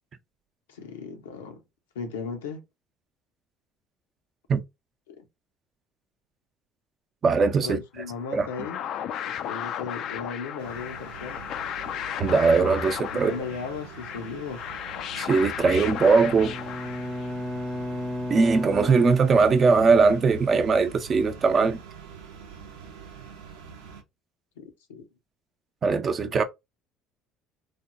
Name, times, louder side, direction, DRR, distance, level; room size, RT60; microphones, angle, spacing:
voice 1, 0.7-1.6 1.9-2.6 5.1-5.2 7.6-8.8 9.2-11.4 13.1-14.7 24.6-25.1 26.2-26.4, left 5 dB, 90° left, 0.7 m, -36 dB
voice 2, 7.2-7.8 8.3-8.5 12.2-13.3 15.2-16.5 18.3-21.8 25.8-26.4, right 4 dB, 45° right, 0.6 m, -20 dB
sound 1, 8.2-17.6, left 9 dB, 60° left, 0.3 m, -35 dB
sound 2, 10.6-24.0, right 7 dB, 85° right, 0.7 m, -45 dB
Bowed string instrument, 16.4-20.0, left 1 dB, 5° left, 0.5 m, -34 dB
3.3 x 2.2 x 2.5 m
hypercardioid pair, 70°, 0 cm